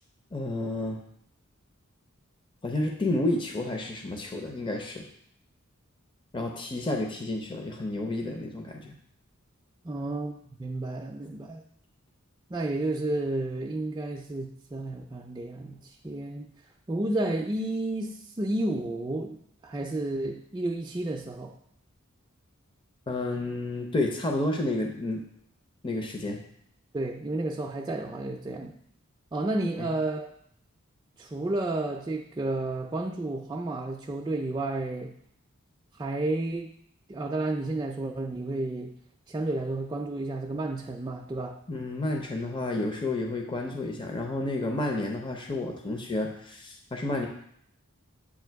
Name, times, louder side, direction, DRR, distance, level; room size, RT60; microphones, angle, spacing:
voice 1, 0.3-1.0 2.6-5.0 6.3-8.9 23.1-25.2 25.8-26.4 29.8-29.9 41.7-47.3, left 2 dB, 25° left, 2 dB, 0.6 m, -30 dB
voice 2, 9.8-10.3 10.6-11.6 12.5-16.5 16.9-21.6 26.9-28.7 29.3-30.3 31.2-35.1 36.0-36.7 37.1-38.9 39.3-41.6, right 2 dB, 20° right, 1 dB, 0.4 m, -31 dB
8.3 x 2.8 x 4.5 m, 0.68 s
head